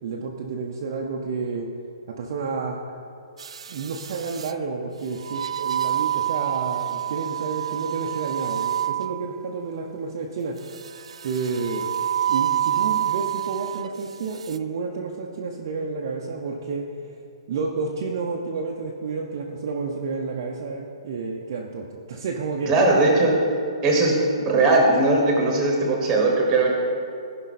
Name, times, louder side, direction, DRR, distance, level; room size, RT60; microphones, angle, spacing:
voice 1, 0.0-1.7 2.1-3.0 3.7-10.6 11.2-17.2 17.5-22.9, right 4 dB, 35° right, -1 dB, 0.6 m, -30 dB
sound 1, 3.4-4.5 5.2-9.5 10.7-13.9 14.3-14.6, right 11 dB, 85° right, 0.4 m, -27 dB
voice 2, 22.7-23.4 23.8-26.7, right 2 dB, 15° right, 0 dB, 1.2 m, -19 dB
15.0 x 5.5 x 4.1 m, 2.5 s
hypercardioid pair, 180°, 3 cm